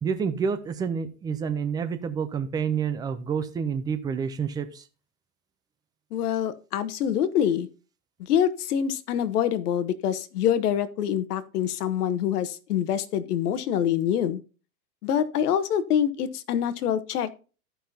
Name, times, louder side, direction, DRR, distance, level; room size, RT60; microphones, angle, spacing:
voice 1, 0.0-4.8, right 6 dB, 10° right, 9 dB, 0.4 m, -28 dB
voice 2, 6.1-7.7 8.2-14.4 15.0-17.3, left 9 dB, 75° left, 14 dB, 1.2 m, -25 dB
14.0 x 5.7 x 2.7 m, 0.35 s
hypercardioid pair, 130°, 46 cm